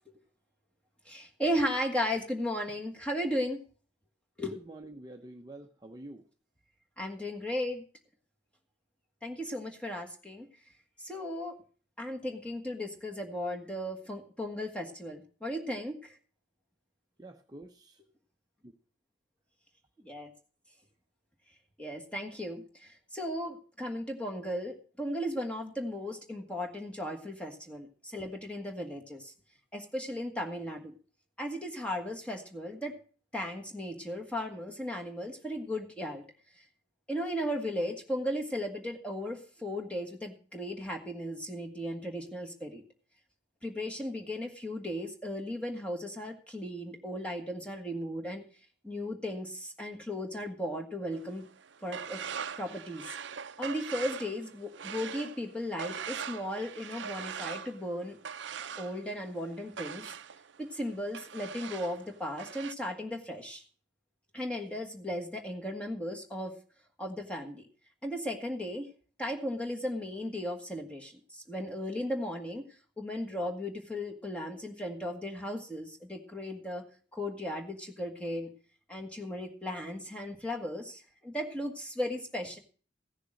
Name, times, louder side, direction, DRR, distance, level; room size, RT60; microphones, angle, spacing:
voice 1, 1.0-3.6 4.4-4.5 7.0-7.8 9.2-10.5 11.0-11.5 12.0-16.2 20.1-20.3 21.8-29.3 29.7-30.9 31.4-33.0 33.3-36.2 37.1-42.8 43.6-48.4 48.8-51.5 51.8-52.2 52.6-53.2 53.6-58.2 58.8-60.1 60.6-63.6 64.3-66.5 67.0-67.7 68.0-68.9 69.2-72.6 73.0-76.8 77.1-78.5 78.9-82.6, equal, 5° left, 1 dB, 1.5 m, -36 dB
voice 2, 4.5-6.3 17.2-18.0, right 1 dB, 20° right, 3 dB, 0.8 m, -47 dB
sound 1, 51.1-62.7, right 7 dB, 65° right, 0.5 m, -42 dB
15.5 x 6.7 x 6.4 m, 0.40 s
head